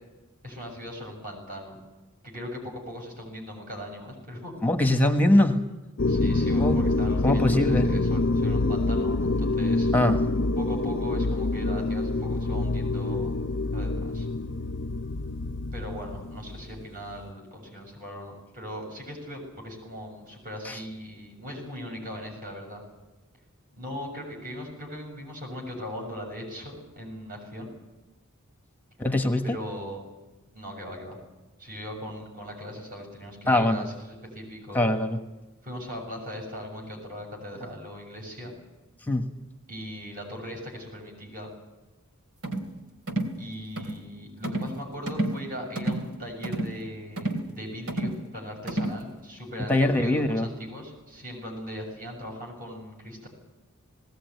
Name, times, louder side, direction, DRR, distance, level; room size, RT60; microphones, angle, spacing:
voice 1, 0.4-1.8 2.2-4.5 6.1-9.9 10.6-13.3 13.7-14.3 15.7-22.8 23.8-27.7 29.4-30.0 30.6-31.2 31.6-34.9 35.6-38.6 39.7-41.5 43.4-53.3, equal, 40° right, 0 dB, 6.9 m, -39 dB
voice 2, 4.6-5.6 6.6-6.8 7.2-7.9 9.9-10.2 20.6-20.8 29.0-29.6 33.5-33.9 34.7-35.2 39.1-39.3 49.7-50.5, left 1 dB, 10° left, 5 dB, 1.3 m, -22 dB
sound 1, 6.0-16.8, left 2 dB, 55° left, 0.7 m, -26 dB
sound 2, 42.4-42.7 43.1-43.4 43.8-44.0 44.4-44.8 45.1-45.4 45.8-46.1 46.4-46.8 47.2-47.5 47.9-48.2 48.7-49.0, right 1 dB, 75° right, 2.9 m, -30 dB
19.5 x 18.0 x 9.3 m, 1.1 s
head